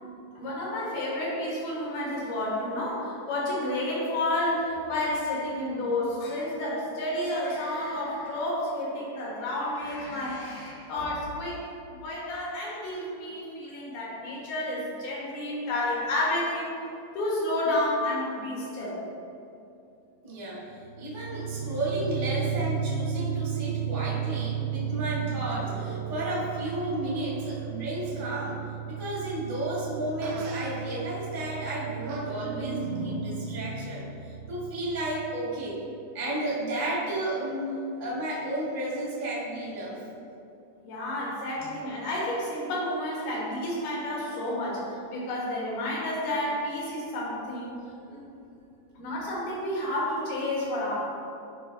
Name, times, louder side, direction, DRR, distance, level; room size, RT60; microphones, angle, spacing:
voice 1, 0.4-11.6 12.0-16.7 17.2-19.0 40.8-44.8 45.1-47.8 48.1-48.2 49.0-51.0, left 1 dB, 75° left, -5 dB, 3.8 m, -30 dB
voice 2, 20.2-20.7 21.0-28.6 28.9-35.8 36.1-40.0 41.6-41.7, right 1 dB, 25° right, -7 dB, 1.1 m, -32 dB
sound 1, 20.6-35.2, right 8 dB, 75° right, 2.0 m, -34 dB
Fart, 30.2-30.8 32.1-32.3, right 5 dB, 90° right, 2.7 m, -42 dB
12.5 x 5.0 x 3.4 m, 2.6 s
omnidirectional pair, 4.4 m